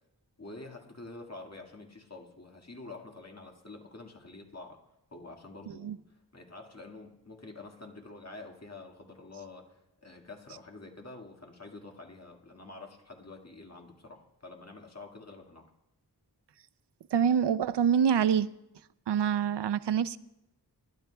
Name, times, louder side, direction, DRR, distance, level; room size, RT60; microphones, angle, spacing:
voice 1, 0.4-4.8 5.1-15.7, left 3 dB, 40° left, 1.9 m, -47 dB
voice 2, 17.1-18.5 19.1-20.2, right 8 dB, 85° right, 0.5 m, -25 dB
27.5 x 12.0 x 2.3 m
wide cardioid pair, 80°, 40 cm